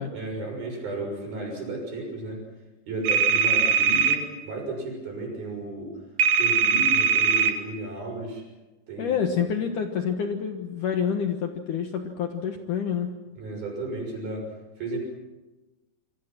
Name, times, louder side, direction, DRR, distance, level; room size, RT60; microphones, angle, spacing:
voice 1, 0.1-2.4 2.9-5.9 6.4-8.4 8.9-9.3 13.3-14.5 14.8-15.0, right 2 dB, 60° right, 1 dB, 8.1 m, -33 dB
sound 1, 3.1-4.2 6.2-7.5, right 7 dB, 80° right, 4.0 m, -21 dB
voice 2, 9.0-13.2, left 7 dB, 60° left, 5 dB, 2.3 m, -28 dB
27.5 x 24.5 x 6.0 m, 1.1 s
omnidirectional pair, 4.9 m